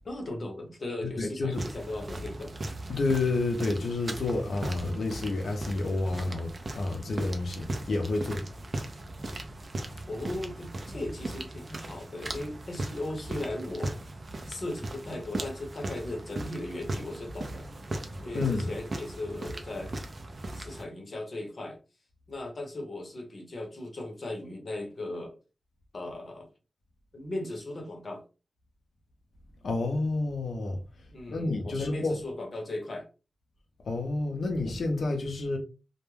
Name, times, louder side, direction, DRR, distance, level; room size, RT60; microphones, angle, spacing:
voice 1, 0.0-2.5 10.1-14.0 14.5-17.7 18.2-19.9 20.5-21.8 22.3-25.3 25.9-26.5 27.1-28.2 31.1-33.1, left 1 dB, 45° left, 0.8 m, -37 dB
voice 2, 1.0-1.7 2.9-8.5 18.3-18.7 29.6-30.8 31.3-32.1 33.8-35.6, left 3 dB, 90° left, 0.6 m, -29 dB
sound 1, 1.5-20.8, right 2 dB, 45° right, 0.4 m, -38 dB
2.2 x 2.1 x 3.1 m
wide cardioid pair, 125°, 0 cm